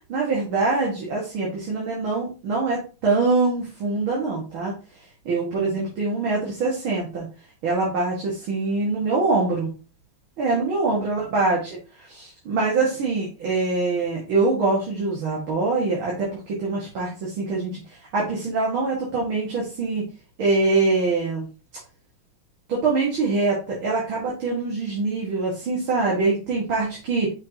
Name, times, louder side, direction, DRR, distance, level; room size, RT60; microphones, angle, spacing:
voice 1, 0.1-4.7 5.3-7.3 7.6-9.7 10.4-11.8 12.1-17.8 18.1-20.0 20.4-21.5 22.7-27.3, right 3 dB, 80° right, -4 dB, 2.6 m, -24 dB
6.0 x 5.8 x 2.8 m, 0.33 s
omnidirectional pair, 2.2 m